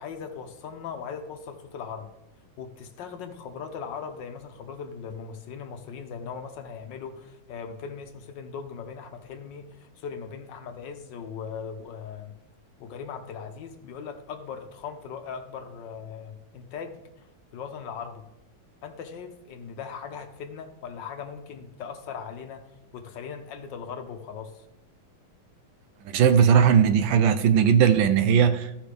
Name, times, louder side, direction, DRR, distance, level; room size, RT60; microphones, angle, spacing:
voice 1, 0.0-2.1 2.6-12.3 12.8-17.0 17.5-18.2 18.8-22.6 22.9-24.6, left 6 dB, 65° left, 1.3 m, -39 dB
voice 2, 26.1-28.8, right 7 dB, 75° right, 1.3 m, -19 dB
14.5 x 5.7 x 3.4 m
omnidirectional pair, 2.3 m